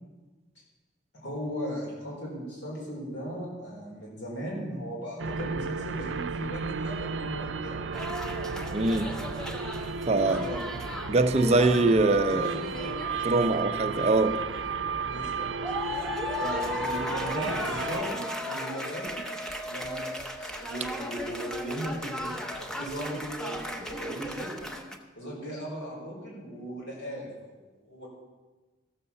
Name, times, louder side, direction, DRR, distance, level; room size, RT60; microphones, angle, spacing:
voice 1, 1.1-7.9 10.1-10.7 12.3-13.0 13.3-13.5 15.0-15.5 16.4-19.2 19.6-22.3 22.6-24.7 25.2-28.1, equal, 75° left, -4 dB, 4.2 m, -37 dB
sound 1, 5.2-18.0, right 5 dB, 85° right, 0.5 m, -34 dB
sound 2, 7.9-12.0 12.3-14.1 14.5-15.3 15.6-25.0, left 1 dB, 5° left, 0.8 m, -36 dB
voice 2, 8.7-9.1 10.1-10.5 11.1-12.5 13.2-14.4, right 2 dB, 35° right, 8 dB, 0.6 m, -23 dB
14.0 x 6.7 x 6.9 m, 1.3 s
head